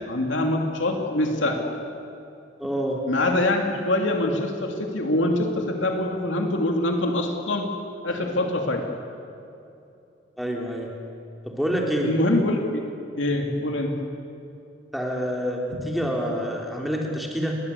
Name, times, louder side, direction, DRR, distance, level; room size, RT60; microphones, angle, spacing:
voice 1, 0.1-1.7 3.1-7.7 8.0-8.8 12.0-12.8 13.2-14.0, left 1 dB, 80° left, 2 dB, 2.7 m, -24 dB
voice 2, 2.6-3.0 10.4-10.9 11.4-12.2 14.9-17.6, equal, ahead, -1 dB, 3.3 m, -27 dB
30.0 x 21.5 x 8.4 m, 2.7 s
head